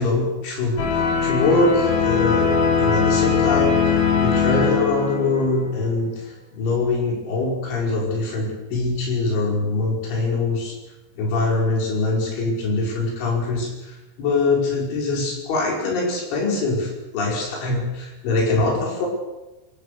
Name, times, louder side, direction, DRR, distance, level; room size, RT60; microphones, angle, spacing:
voice 1, 0.0-2.5 2.8-10.8 11.2-19.1, left 3 dB, 80° left, -1 dB, 7.7 m, -23 dB
sound 1, 0.8-5.6, left 6 dB, 45° left, 4.8 m, -20 dB
26.0 x 15.5 x 6.8 m, 1.1 s
omnidirectional pair, 5.4 m